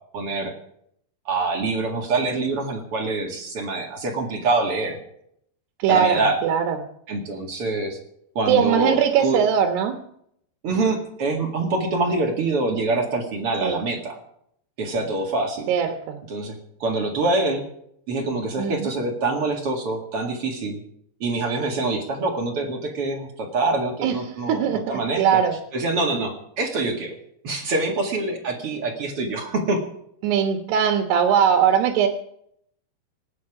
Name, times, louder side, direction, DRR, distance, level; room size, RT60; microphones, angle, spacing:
voice 1, 0.1-0.5 1.3-5.0 5.9-6.4 7.1-8.0 8.4-9.4 10.6-14.2 14.8-15.7 16.3-17.6 18.1-20.8 21.2-25.4 25.7-27.1 27.4-29.8, right 3 dB, 45° right, 2 dB, 2.2 m, -25 dB
voice 2, 5.8-6.8 8.5-10.0 13.6-13.8 15.7-16.2 18.6-18.9 24.0-24.1 24.5-25.6 30.2-32.1, right 8 dB, 75° right, 3 dB, 3.3 m, -20 dB
26.5 x 9.3 x 4.9 m, 0.72 s
omnidirectional pair, 4.9 m